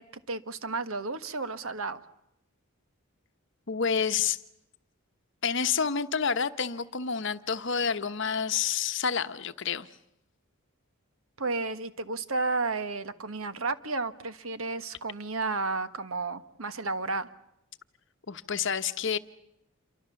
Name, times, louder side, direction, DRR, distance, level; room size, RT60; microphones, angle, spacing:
voice 1, 0.0-2.0 11.4-17.3, right 3 dB, 75° right, 12 dB, 1.4 m, -32 dB
voice 2, 3.7-4.4 5.4-9.9 18.3-19.2, left 6 dB, 55° left, 11 dB, 1.0 m, -29 dB
28.5 x 24.0 x 7.0 m, 0.83 s
head